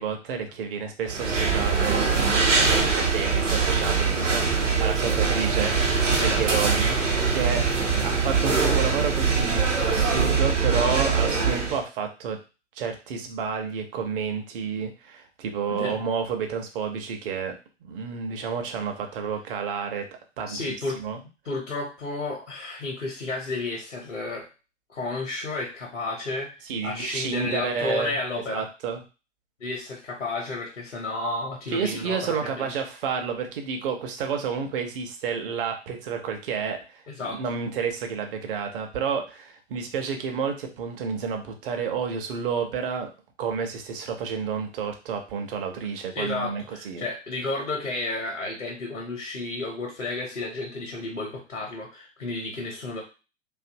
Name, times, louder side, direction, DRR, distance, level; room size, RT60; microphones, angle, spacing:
voice 1, 0.0-5.8 6.1-7.6 8.0-12.4 12.8-17.5 17.8-20.1 20.4-21.2 26.7-28.2 28.5-29.0 31.7-37.0 37.3-43.1 43.4-47.0, right 6 dB, 50° right, 5 dB, 0.7 m, -30 dB
sound 1, 1.1-11.8, right 5 dB, 85° right, 0.9 m, -23 dB
voice 2, 6.1-6.4 7.6-7.8 15.7-16.0 20.5-21.0 21.4-24.5 24.9-26.6 26.8-28.7 29.6-32.7 37.1-37.4 46.1-53.0, left 2 dB, 85° left, -1 dB, 0.9 m, -32 dB
2.7 x 2.5 x 2.5 m, 0.32 s
figure-of-eight pair, 100°, 36 cm